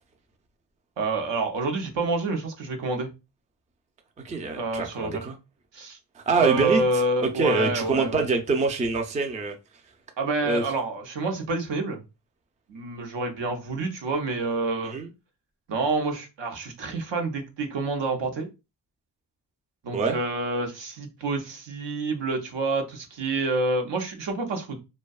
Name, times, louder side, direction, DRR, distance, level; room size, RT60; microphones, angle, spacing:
voice 1, 1.0-3.1 4.6-5.3 5.7-6.0 6.4-8.3 10.2-12.0 12.7-15.0 15.7-18.5 19.8-24.8, right 3 dB, 80° right, 0.7 m, -28 dB
voice 2, 4.2-5.4 6.2-6.8 7.2-9.5 10.4-10.6 14.8-15.1 19.9-20.2, right 4 dB, 20° right, 0.3 m, -25 dB
2.6 x 2.2 x 2.3 m
wide cardioid pair, 105°, 43 cm